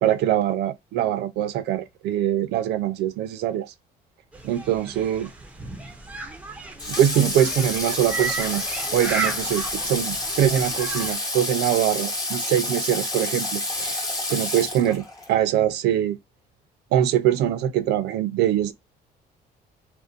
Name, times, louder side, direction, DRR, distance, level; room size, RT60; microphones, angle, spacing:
voice 1, 0.0-3.7 4.4-5.3 6.9-8.6 8.9-14.0 14.3-16.2 16.9-18.7, right 11 dB, 75° right, 0.5 m, -23 dB
sound 1, 4.3-11.2, right 3 dB, 10° right, 0.6 m, -34 dB
Water / Water tap faucet, 6.8-15.3, left 2 dB, 20° left, 0.9 m, -29 dB
2.5 x 2.1 x 2.4 m
cardioid pair, 110°, 17 cm